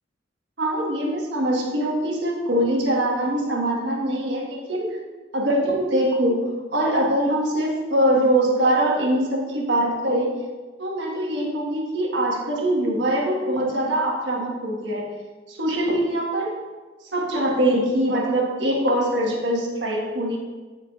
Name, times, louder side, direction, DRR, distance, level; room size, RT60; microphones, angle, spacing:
voice 1, 0.6-5.0 5.3-10.3 10.8-15.1 15.5-16.5 17.1-20.4, right 1 dB, 70° right, -1 dB, 1.5 m, -23 dB
13.5 x 4.7 x 2.4 m, 1.4 s
head